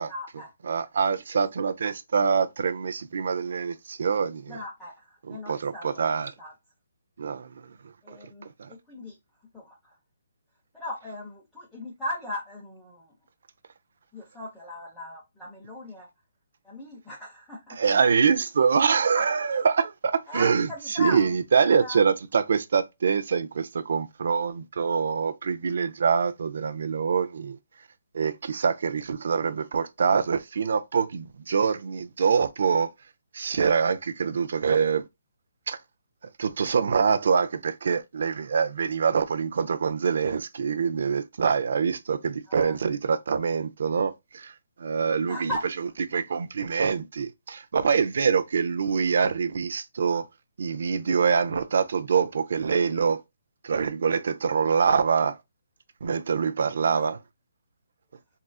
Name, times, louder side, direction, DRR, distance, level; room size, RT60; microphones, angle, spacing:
voice 1, 0.1-0.5 4.5-6.5 8.0-9.2 9.5-10.0 10.7-13.1 14.1-16.1 16.6-17.8 20.3-22.0 42.5-42.8 45.3-45.6 56.8-57.1, left 1 dB, ahead, 0.6 m, -38 dB
voice 2, 0.6-4.6 5.3-6.3 7.2-7.7 8.6-8.7 17.8-27.6 28.1-32.9 33.3-35.0 35.7-35.8 36.4-44.5 44.8-45.5 46.1-50.2 50.6-53.2 53.6-55.4 56.0-57.2, right 6 dB, 55° right, 0.4 m, -25 dB
3.8 x 2.4 x 2.2 m
hypercardioid pair, 170°, 0 cm